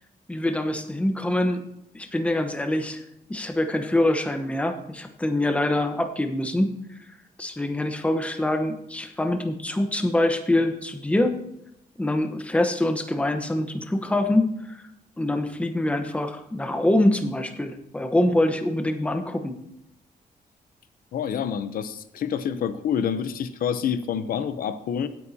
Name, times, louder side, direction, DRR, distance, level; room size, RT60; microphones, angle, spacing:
voice 1, 0.3-1.6 1.9-3.0 3.3-6.7 7.4-11.3 12.0-14.8 15.2-19.5, left 1 dB, 10° left, 6 dB, 1.0 m, -24 dB
voice 2, 21.1-25.1, left 8 dB, 75° left, 11 dB, 0.7 m, -27 dB
17.0 x 9.1 x 2.8 m, 0.82 s
wide cardioid pair, 145°, 15 cm